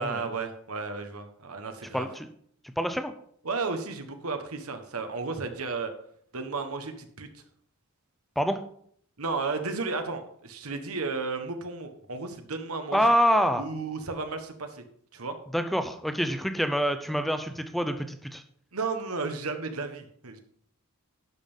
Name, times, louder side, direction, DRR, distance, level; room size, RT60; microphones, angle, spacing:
voice 1, 0.0-2.1 3.4-5.9 6.3-7.3 9.2-13.1 13.6-14.8 15.1-15.3 18.7-20.4, right 4 dB, 85° right, 7 dB, 1.4 m, -33 dB
voice 2, 1.9-2.3 2.8-3.1 8.4-8.6 12.9-13.6 15.5-18.4, equal, ahead, 8 dB, 0.7 m, -26 dB
11.5 x 5.6 x 5.6 m, 0.63 s
head